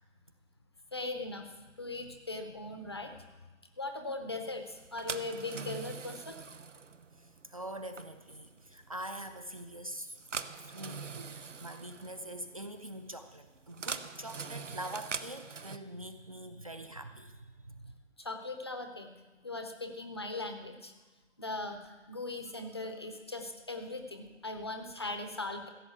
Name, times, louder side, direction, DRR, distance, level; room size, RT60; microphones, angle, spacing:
voice 1, 0.9-3.3 3.8-6.4 18.2-19.2 19.4-20.9 21.4-25.7, left 2 dB, 20° left, 6 dB, 0.6 m, -39 dB
sound 1, 4.7-15.8, right 5 dB, 75° right, 0.9 m, -43 dB
voice 2, 7.2-10.2 10.6-17.9, right 1 dB, 30° right, 9 dB, 0.6 m, -44 dB
15.5 x 7.6 x 8.2 m, 1.2 s
figure-of-eight pair, 150°, 37 cm